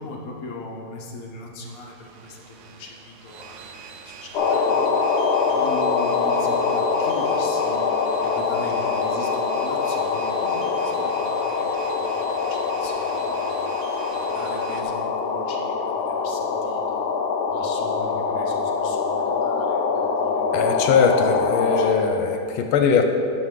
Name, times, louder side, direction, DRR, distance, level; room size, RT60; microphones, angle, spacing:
voice 1, 0.0-5.1 5.5-13.7 14.1-17.1 17.5-20.7 21.5-22.1, left 2 dB, 50° left, -1 dB, 1.3 m, -39 dB
sound 1, 1.6-14.8, right 6 dB, 70° right, 1.0 m, -42 dB
sound 2, 4.3-21.9, left 5 dB, 65° left, 1.1 m, -24 dB
voice 2, 20.5-23.0, left 6 dB, 85° left, 5 dB, 1.5 m, -20 dB
9.9 x 7.0 x 3.7 m, 2.6 s
omnidirectional pair, 2.3 m